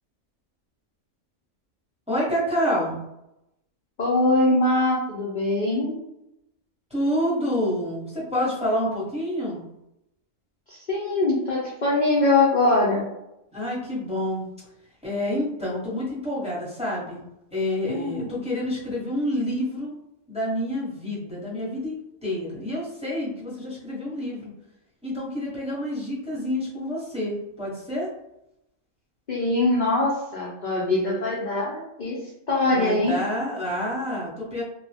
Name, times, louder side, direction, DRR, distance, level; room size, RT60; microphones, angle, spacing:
voice 1, 2.1-2.9 6.9-9.6 13.5-14.5 15.0-17.2 17.5-19.9 20.3-24.5 25.0-28.1 32.7-34.6, left 1 dB, 5° right, -7 dB, 1.0 m, -28 dB
voice 2, 4.0-6.0 10.7-13.0 17.9-18.4 29.3-32.2 32.5-33.2, left 2 dB, 45° left, -5 dB, 0.6 m, -22 dB
2.9 x 2.3 x 3.3 m, 0.84 s
omnidirectional pair, 1.5 m